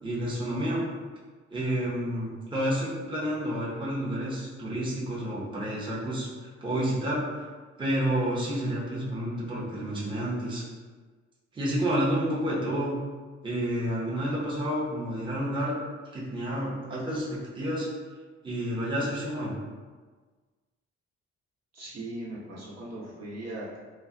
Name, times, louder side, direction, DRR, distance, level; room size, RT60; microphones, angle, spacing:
voice 1, 0.0-0.9 1.5-6.3 6.6-7.2 7.8-10.6 11.5-13.0 13.4-15.7 16.1-17.9 18.4-19.5, equal, 15° right, -7 dB, 0.8 m, -29 dB
voice 2, 21.7-23.8, right 1 dB, 60° right, -7 dB, 0.9 m, -39 dB
2.2 x 2.1 x 3.7 m, 1.4 s
cardioid pair, 90°, 30 cm